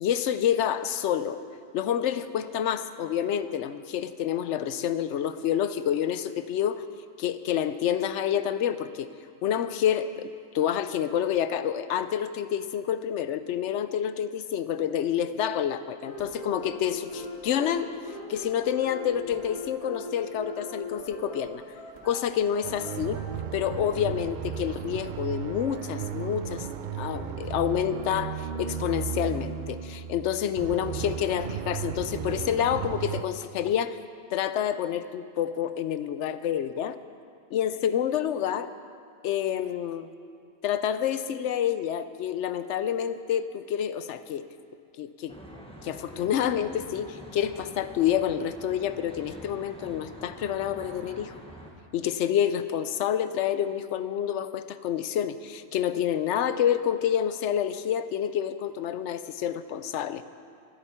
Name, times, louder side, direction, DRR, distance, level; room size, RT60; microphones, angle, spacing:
voice 1, 0.0-1.4 1.7-6.8 7.2-9.1 9.4-17.9 18.3-21.6 22.0-23.2 23.5-26.7 27.0-34.0 34.3-37.0 37.5-38.7 39.2-40.1 40.6-44.4 45.0-45.4 45.8-51.3 51.9-60.2, left 9 dB, 80° left, 12 dB, 0.9 m, -28 dB
sound 1, 16.0-25.9, left 1 dB, 30° right, 2.6 m, -41 dB
sound 2, 22.6-33.2, right 8 dB, 55° right, 0.6 m, -35 dB
Traffic noise roadway noise, 45.3-51.7, equal, 5° left, 1.2 m, -46 dB
24.0 x 8.0 x 4.4 m, 2.3 s
omnidirectional pair, 1.2 m